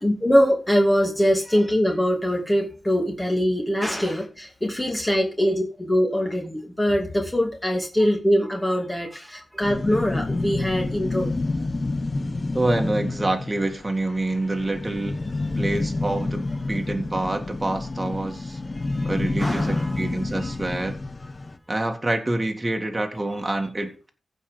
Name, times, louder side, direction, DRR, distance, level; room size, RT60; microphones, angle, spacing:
voice 1, 0.0-11.3 19.0-19.1 19.4-20.0, equal, 15° left, 0 dB, 2.5 m, -23 dB
sound 1, 9.6-21.6, left 2 dB, 35° left, 1.1 m, -29 dB
voice 2, 12.5-15.2 15.6-18.6 19.0-21.0 21.7-24.1, right 2 dB, 20° right, 3 dB, 2.1 m, -27 dB
15.5 x 5.5 x 5.1 m, 0.35 s
wide cardioid pair, 85°, 0 cm